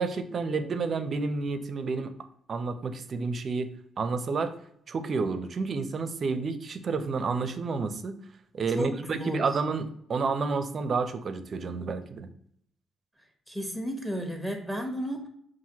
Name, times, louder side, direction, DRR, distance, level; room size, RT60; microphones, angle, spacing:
voice 1, 0.0-2.1 2.5-4.5 4.9-8.2 8.5-12.3, right 4 dB, 50° right, 10 dB, 0.5 m, -30 dB
voice 2, 8.7-9.6 13.5-15.3, equal, ahead, 3 dB, 0.9 m, -33 dB
5.6 x 2.5 x 2.8 m, 0.70 s
cardioid pair, 90°, 0 cm